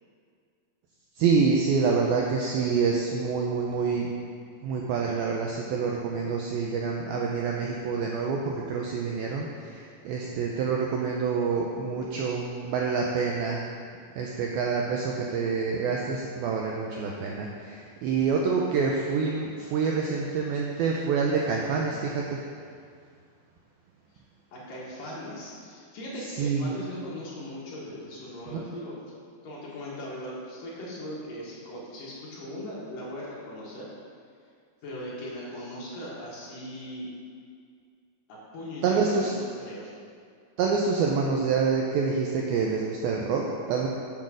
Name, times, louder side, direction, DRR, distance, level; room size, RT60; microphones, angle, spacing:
voice 1, 1.2-4.1 4.6-13.6 14.2-22.4 26.2-26.7 28.5-28.6 38.8-39.3 40.6-43.9, right 5 dB, 85° right, -1 dB, 2.1 m, -27 dB
voice 2, 24.5-29.0 29.4-33.9 34.8-37.1 38.3-39.9, left 1 dB, 60° left, -6 dB, 3.0 m, -39 dB
7.8 x 7.4 x 6.3 m, 2.2 s
omnidirectional pair, 5.1 m